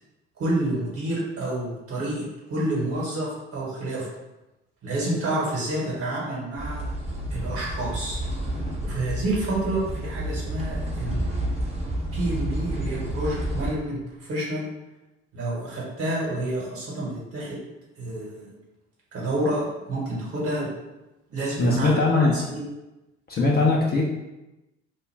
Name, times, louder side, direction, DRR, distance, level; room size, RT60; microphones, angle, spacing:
voice 1, 0.4-4.1 4.8-6.9 7.3-8.2 8.8-11.5 12.1-14.7 15.3-17.6 18.0-18.5 19.1-20.7 21.3-22.6, right 1 dB, 40° right, -4 dB, 1.2 m, -29 dB
sound 1, 6.6-13.7, right 1 dB, 20° right, 0.8 m, -30 dB
voice 2, 21.6-22.4 23.3-24.0, left 2 dB, 25° left, -3 dB, 0.5 m, -20 dB
2.4 x 2.2 x 3.3 m, 1.0 s
figure-of-eight pair, 60°, 36 cm